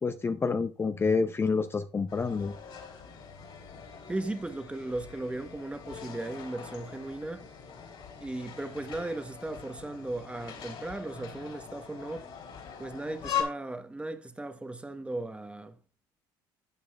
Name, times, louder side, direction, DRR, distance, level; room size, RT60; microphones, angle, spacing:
voice 1, 0.0-2.5, left 4 dB, 25° left, 0.6 m, -28 dB
sound 1, 2.1-13.4, left 8 dB, 60° left, 3.5 m, -41 dB
voice 2, 4.1-7.5 8.2-12.3 12.8-15.8, right 2 dB, 10° right, 1.1 m, -37 dB
12.5 x 8.1 x 2.3 m
supercardioid pair, 90°, 10 cm